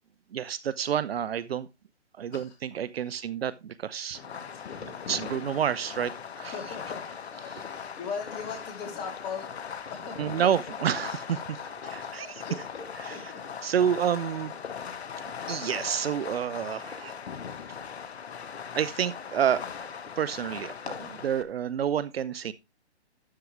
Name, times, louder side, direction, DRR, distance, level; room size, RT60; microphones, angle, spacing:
voice 1, 0.3-1.7 2.2-4.2 4.8-6.5 10.2-11.2 12.1-12.3 13.6-14.5 15.2-17.2 18.7-19.6 20.2-22.5, right 9 dB, 60° right, 0.7 m, -29 dB
voice 2, 3.0-3.3 4.1-5.2 6.4-9.5 9.9-10.5 11.0-11.7 12.0-13.4 13.9-14.1, left 5 dB, 25° left, 3.6 m, -41 dB
Fireworks, 4.1-21.4, left 7 dB, 65° left, 1.4 m, -39 dB
12.5 x 7.5 x 3.3 m
hypercardioid pair, 140°, 34 cm